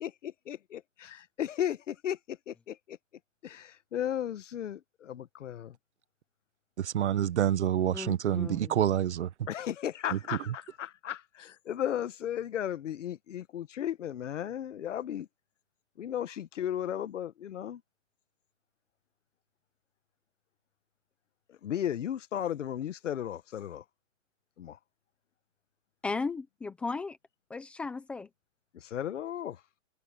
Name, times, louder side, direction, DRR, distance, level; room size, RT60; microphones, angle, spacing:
voice 1, 0.0-3.0 3.4-5.8 9.5-15.3 16.0-17.8 21.5-23.8 24.6-24.8 28.7-29.6, left 10 dB, 75° left, 1.3 m, -35 dB
voice 2, 6.8-9.5 10.1-10.2 10.5-10.6, right 10 dB, 65° right, 1.4 m, -28 dB
voice 3, 7.9-8.7 26.0-27.2 27.5-28.3, left 4 dB, 5° left, 0.5 m, -36 dB
hypercardioid pair, 165°, 37 cm